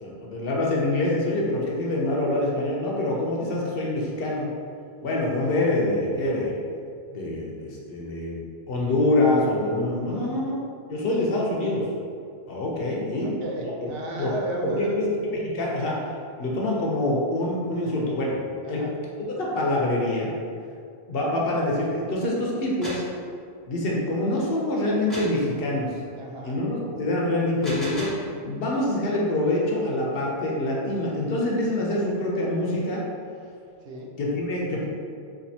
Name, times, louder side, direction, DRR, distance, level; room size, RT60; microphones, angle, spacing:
voice 1, 0.0-4.5 5.0-6.6 7.1-8.4 8.7-10.6 10.9-11.8 12.5-13.3 14.2-14.3 14.6-16.0 16.4-18.4 18.7-18.8 19.4-20.3 21.1-23.0 23.7-25.9 26.4-28.1 28.5-33.0 34.2-34.9, left 1 dB, 65° left, -3 dB, 0.8 m, -25 dB
voice 2, 10.1-10.4 13.1-15.0 18.6-18.9 26.1-26.6 33.8-34.1, right 3 dB, 70° right, -1 dB, 0.8 m, -34 dB
sound 1, 22.6-23.1 25.1-25.4 27.4-28.3, equal, ahead, 0.9 m, -36 dB
4.3 x 2.6 x 2.7 m, 2.3 s
omnidirectional pair, 1.1 m